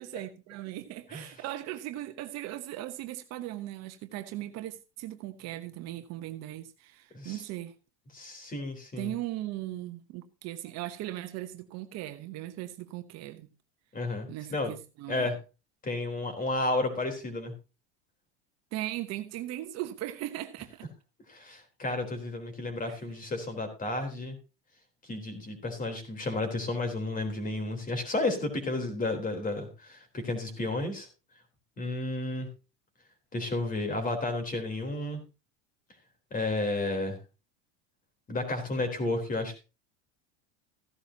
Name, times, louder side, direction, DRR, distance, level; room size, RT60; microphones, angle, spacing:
voice 1, 0.0-7.8 9.0-13.5 14.3-15.3 18.7-20.9 22.9-23.0, right 14 dB, 50° right, 1.2 m, -38 dB
voice 2, 8.1-9.1 13.9-14.7 15.1-15.4 15.8-17.5 21.3-24.4 25.1-31.1 31.8-32.5 33.3-35.2 36.3-37.2 38.3-39.6, left 2 dB, 25° left, 3.9 m, -32 dB
15.0 x 11.5 x 2.9 m
supercardioid pair, 120°, 32 cm